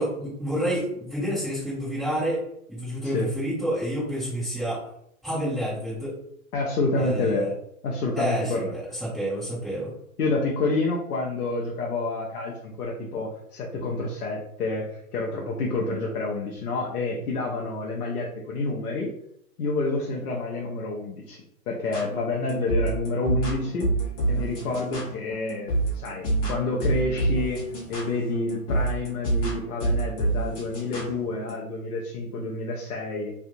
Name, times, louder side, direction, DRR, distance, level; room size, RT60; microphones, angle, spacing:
voice 1, 0.0-2.4 2.7-4.8 5.2-6.1 6.9-7.5 8.2-9.9, equal, ahead, -12 dB, 1.2 m, -29 dB
voice 2, 6.5-7.5 7.8-8.7 10.2-19.1 19.6-27.6 27.9-33.3, left 3 dB, 85° left, -1 dB, 0.9 m, -28 dB
sound 1, 21.8-31.6, right 2 dB, 35° left, 1.5 m, -27 dB
3.4 x 2.7 x 2.5 m, 0.73 s
hypercardioid pair, 125°, 44 cm